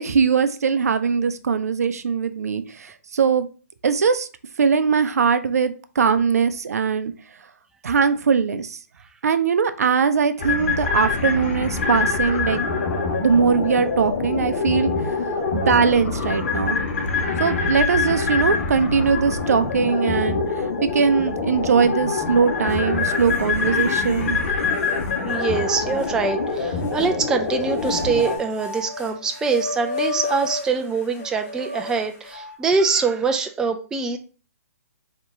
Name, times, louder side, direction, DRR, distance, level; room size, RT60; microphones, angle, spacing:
voice 1, 0.0-3.5 3.8-4.3 4.6-7.1 7.8-8.8 9.2-12.6 13.2-14.9 15.5-16.8 17.4-24.4, right 6 dB, 70° right, 10 dB, 0.5 m, -21 dB
sound 1, 10.4-28.4, left 4 dB, 45° left, 1.5 m, -25 dB
sound 2, 22.7-22.8 23.3-24.2 24.8-24.9 26.0-27.1 27.7-32.6, left 2 dB, 25° left, 0.9 m, -33 dB
voice 2, 25.2-34.2, right 4 dB, 5° right, 5 dB, 0.3 m, -24 dB
4.2 x 2.9 x 3.5 m, 0.37 s
hypercardioid pair, 135°, 9 cm